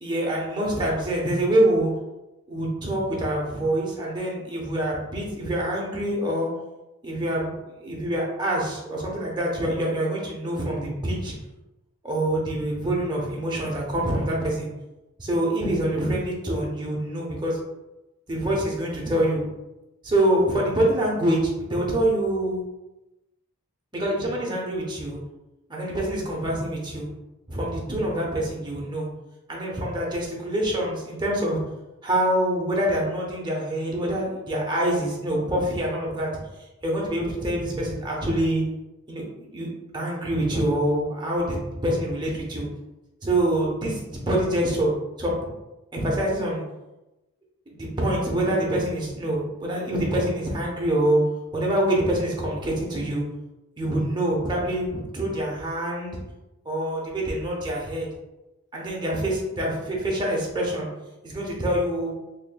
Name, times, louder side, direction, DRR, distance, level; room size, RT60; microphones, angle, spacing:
voice 1, 0.0-1.9 2.5-6.5 7.0-11.3 12.0-14.7 15.2-17.6 18.3-19.4 20.0-22.6 23.9-25.2 25.7-27.1 27.5-29.1 29.5-31.6 32.0-36.3 36.8-38.6 39.1-39.2 39.5-39.7 39.9-42.7 43.2-44.9 45.2-45.5 45.9-46.6 47.7-51.2 51.5-53.2 53.8-56.2 56.6-58.1 58.7-60.9 61.2-62.1, right 1 dB, 20° right, -3 dB, 0.9 m, -25 dB
4.4 x 3.3 x 2.2 m, 1.0 s
head